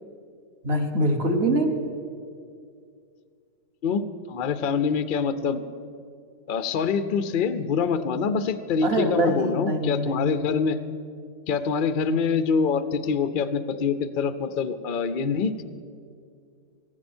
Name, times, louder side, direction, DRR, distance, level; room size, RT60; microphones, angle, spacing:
voice 1, 0.6-1.8 8.8-10.4, right 1 dB, 40° right, 4 dB, 1.3 m, -24 dB
voice 2, 4.3-5.6 6.5-10.8 11.5-15.6, left 5 dB, 75° left, 11 dB, 0.4 m, -25 dB
15.5 x 15.0 x 4.4 m, 2.3 s
omnidirectional pair, 1.8 m